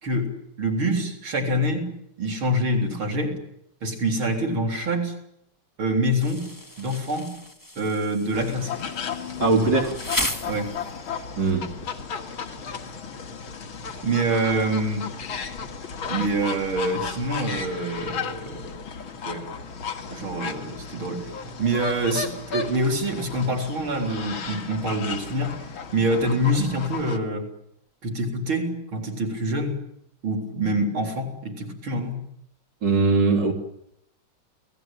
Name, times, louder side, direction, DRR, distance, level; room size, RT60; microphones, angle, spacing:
voice 1, 0.0-3.4 3.8-5.1 5.8-6.5 6.8-7.3 7.8-8.8 10.5-10.7 14.0-15.1 16.1-18.7 19.2-19.4 20.1-21.3 21.6-25.5 25.9-27.5 28.0-29.8 30.2-32.2, right 1 dB, 75° right, 4.6 m, -26 dB
Insect, 6.2-11.2, left 1 dB, 10° left, 2.2 m, -34 dB
sound 1, 8.3-27.2, left 5 dB, 75° left, 2.9 m, -34 dB
voice 2, 9.4-10.0 11.4-11.7 32.8-33.5, right 3 dB, 55° right, 4.3 m, -20 dB
30.0 x 19.0 x 9.1 m
omnidirectional pair, 2.2 m